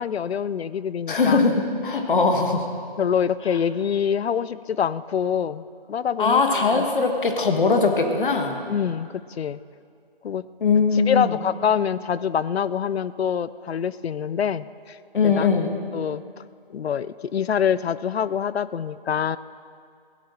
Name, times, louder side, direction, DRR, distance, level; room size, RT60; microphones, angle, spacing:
voice 1, 0.0-1.4 3.0-5.6 5.9-6.9 8.7-9.1 9.4-9.6 10.2-10.4 10.9-15.0 15.2-15.5 15.9-16.2 16.7-19.4, left 8 dB, 90° left, 17 dB, 0.5 m, -25 dB
voice 2, 1.1-2.7 6.2-8.6 10.6-11.3 15.1-15.7, left 4 dB, 55° left, 4 dB, 1.5 m, -20 dB
16.0 x 11.0 x 4.3 m, 2.3 s
hypercardioid pair, 160°, 30 cm